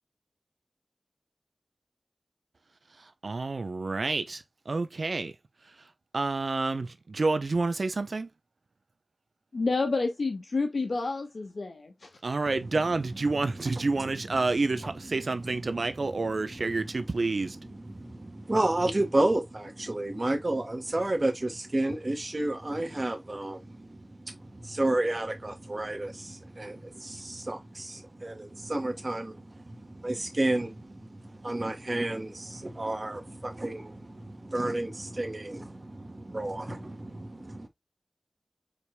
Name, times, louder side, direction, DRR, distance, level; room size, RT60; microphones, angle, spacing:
voice 1, 3.2-5.3 6.1-8.3 12.2-17.6, right 3 dB, 85° right, 0.7 m, -29 dB
voice 2, 9.5-12.1, left 3 dB, 90° left, 1.6 m, -29 dB
voice 3, 12.5-37.7, right 1 dB, 50° right, 1.8 m, -32 dB
5.1 x 4.5 x 2.3 m
wide cardioid pair, 45°, 0 cm